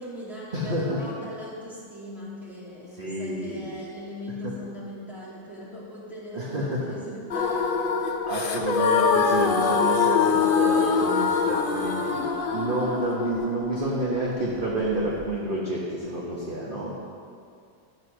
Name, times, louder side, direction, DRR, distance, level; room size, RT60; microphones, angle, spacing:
voice 1, 0.0-8.1, left 1 dB, ahead, -7 dB, 2.6 m, -39 dB
voice 2, 0.5-1.0 3.0-3.7 4.4-4.5 6.3-6.8 8.3-12.3 12.5-16.9, right 1 dB, 35° right, -5 dB, 1.4 m, -29 dB
sound 1, 7.3-15.3, left 5 dB, 50° left, 0.7 m, -24 dB
12.5 x 6.7 x 6.4 m, 2.3 s
omnidirectional pair, 1.8 m